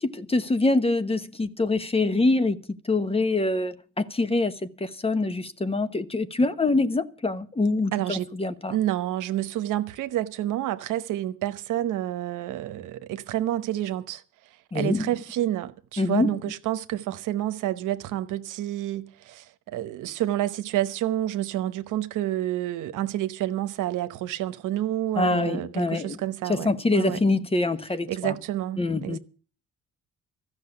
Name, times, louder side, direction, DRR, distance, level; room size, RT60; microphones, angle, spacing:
voice 1, 0.0-8.8 14.7-15.1 16.0-16.4 25.2-26.2 26.5-28.3 28.8-29.2, left 2 dB, 20° left, 1.0 m, -25 dB
voice 2, 7.9-8.3 8.7-14.2 14.7-27.2 28.1-29.2, right 13 dB, 85° right, 1.0 m, -29 dB
14.0 x 6.4 x 9.7 m
cardioid pair, 90°, 30 cm